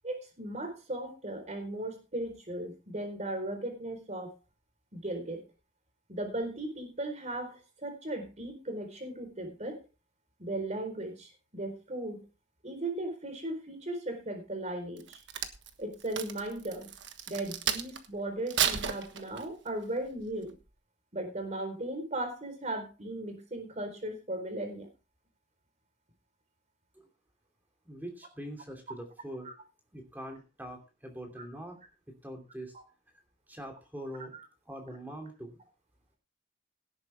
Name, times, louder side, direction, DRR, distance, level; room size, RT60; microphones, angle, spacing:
voice 1, 0.0-4.3 4.9-5.4 6.1-9.8 10.4-12.2 12.6-15.2 15.8-16.9 17.3-20.5 21.1-24.9 29.4-29.5, right 1 dB, 40° right, 6 dB, 4.2 m, -37 dB
Crack, 15.0-18.1 18.5-19.7 20.2-20.4, right 8 dB, 70° right, 1.4 m, -33 dB
voice 2, 27.8-29.5 29.9-31.8 32.1-32.7 33.5-34.3 34.7-35.6, right 1 dB, 10° right, 3 dB, 2.8 m, -43 dB
17.5 x 9.0 x 3.5 m, 0.31 s
head